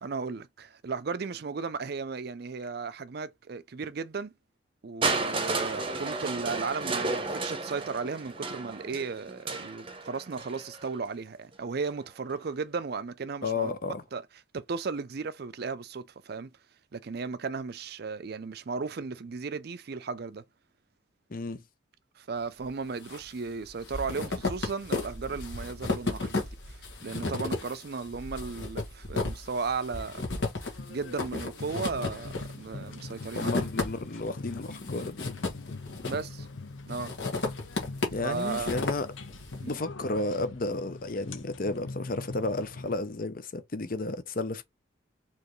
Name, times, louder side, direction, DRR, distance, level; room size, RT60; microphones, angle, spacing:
voice 1, 0.0-4.3 4.8-13.7 14.1-14.2 14.5-16.5 16.9-20.4 22.2-30.2 30.9-33.7 36.0-36.5 36.9-37.1 38.2-38.8 39.6-39.8, right 4 dB, 55° right, 0.5 m, -35 dB
Crushing, 5.0-10.9 11.9-12.0, right 3 dB, 25° right, 0.8 m, -32 dB
voice 2, 13.4-14.0 21.3-21.6 33.4-35.3 38.1-39.1 39.7-44.6, left 2 dB, 45° left, 0.7 m, -32 dB
sound 1, 22.6-23.2 23.5-34.3 34.6-36.4 36.9-39.6, left 3 dB, 60° left, 1.7 m, -34 dB
sound 2, 30.7-43.0, left 3 dB, 80° left, 0.8 m, -42 dB
4.5 x 3.1 x 3.1 m
head